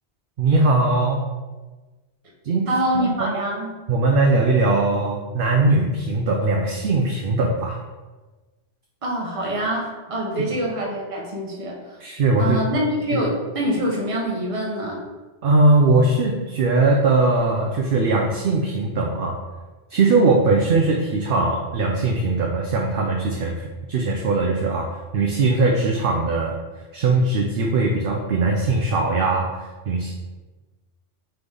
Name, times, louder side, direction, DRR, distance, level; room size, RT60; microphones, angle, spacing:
voice 1, 0.4-1.2 2.4-2.7 2.9-3.3 3.9-7.8 10.5-10.6 12.0-12.6 13.1-13.2 15.4-19.4 19.9-24.9 25.1-26.6 26.9-29.5 29.9-30.1, right 3 dB, 60° right, 1 dB, 0.6 m, -20 dB
voice 2, 2.7-3.8 9.0-11.8 12.4-15.0, right 1 dB, 30° right, -3 dB, 0.8 m, -25 dB
3.9 x 3.5 x 3.3 m, 1.2 s
omnidirectional pair, 1.2 m